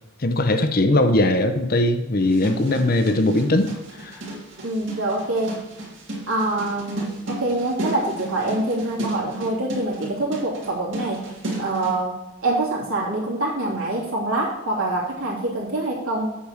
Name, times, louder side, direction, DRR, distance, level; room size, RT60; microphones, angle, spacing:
voice 1, 0.2-3.7 4.0-4.2, left 1 dB, 45° left, 8 dB, 0.7 m, -20 dB
sound 1, 2.2-12.0, right 2 dB, 60° right, 2.7 m, -34 dB
voice 2, 4.6-5.6 6.3-11.3 11.6-12.1 12.4-16.3, right 2 dB, 75° right, -4 dB, 3.0 m, -25 dB
8.4 x 4.7 x 7.3 m, 1.0 s
head